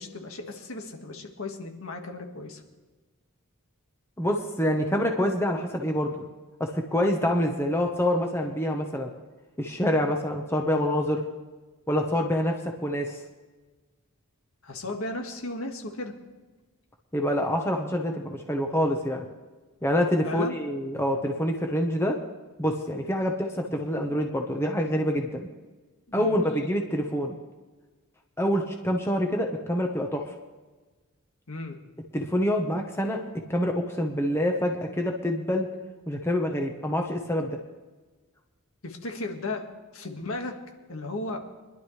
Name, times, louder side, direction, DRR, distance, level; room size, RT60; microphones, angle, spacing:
voice 1, 0.0-2.6 14.6-16.1 20.2-20.6 26.1-26.4 31.5-31.8 38.8-39.7 39.9-40.5 40.9-41.4, left 2 dB, 65° left, 3 dB, 1.8 m, -35 dB
voice 2, 4.2-6.3 6.6-9.1 9.6-11.2 11.9-13.2 17.1-19.3 19.8-22.2 22.6-25.5 26.1-27.4 28.4-30.3 32.1-33.2 33.5-35.7 36.1-37.6, equal, 10° left, 2 dB, 1.1 m, -26 dB
24.0 x 11.5 x 3.3 m, 1.2 s
head